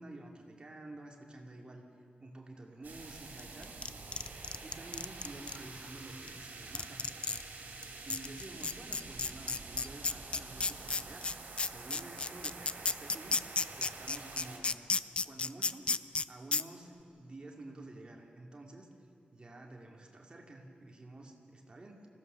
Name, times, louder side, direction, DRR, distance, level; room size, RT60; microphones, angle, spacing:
voice 1, 0.0-1.8 2.2-3.7 4.6-7.0 8.0-11.3 11.6-13.3 13.7-14.9 15.2-16.0 16.3-18.9 19.3-22.1, right 2 dB, 30° right, 1 dB, 2.5 m, -50 dB
sound 1, 2.8-14.6, right 3 dB, 65° right, 3.6 m, -47 dB
sound 2, 3.4-5.6 6.3-6.4 6.7-7.4 7.8-7.9 8.1-16.2 16.5-16.6, left 4 dB, 35° left, 0.4 m, -32 dB
24.5 x 16.5 x 6.8 m, 2.5 s
wide cardioid pair, 150°, 3 cm